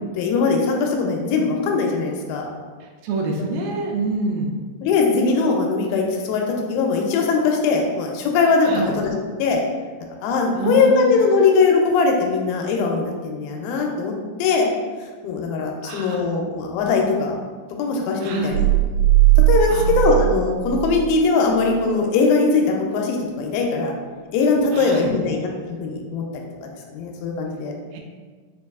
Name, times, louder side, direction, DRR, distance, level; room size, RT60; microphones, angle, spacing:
voice 1, 0.2-2.5 4.8-6.4 6.7-9.1 9.4-9.6 10.2-14.1 14.4-14.7 15.2-17.4 17.8-18.7 19.5-23.9 24.3-27.7, left 4 dB, 85° left, 1 dB, 2.4 m, -20 dB
voice 2, 2.8-4.5 8.7-8.9 10.6-11.4 15.8-16.2 18.2-18.6 19.7-19.8 24.7-25.1 27.9-28.0, right 2 dB, 85° right, 1 dB, 2.4 m, -26 dB
sound 1, 18.5-21.2, right 15 dB, 70° right, 2.7 m, -18 dB
5.8 x 2.6 x 2.3 m, 1.5 s
omnidirectional pair, 4.2 m